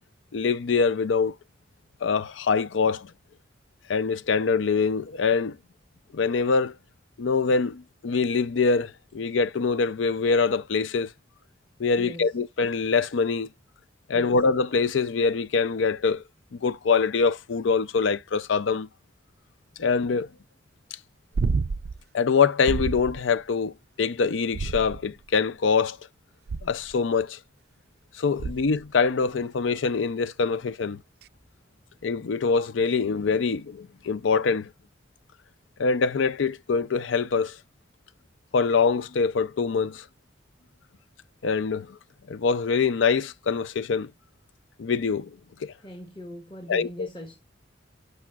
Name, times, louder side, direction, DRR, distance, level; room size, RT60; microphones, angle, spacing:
voice 1, 0.3-1.4 2.0-3.1 3.9-5.6 6.1-6.8 7.2-11.1 11.8-13.5 14.1-16.2 16.5-18.9 19.8-20.3 22.1-26.0 26.6-27.4 28.1-31.0 32.0-34.7 35.8-37.6 38.5-40.1 41.4-42.0 42.3-44.1 44.8-45.7 46.7-47.1, left 5 dB, 80° left, 0.5 m, -24 dB
voice 2, 11.9-12.4 14.1-14.4 28.3-28.6 45.8-47.4, left 1 dB, 25° left, 1.2 m, -41 dB
sound 1, 21.3-22.0 22.7-23.2 24.5-25.2 26.5-26.9 28.4-28.8 31.2-31.3, right 4 dB, 55° right, 0.3 m, -29 dB
12.0 x 5.4 x 2.3 m
head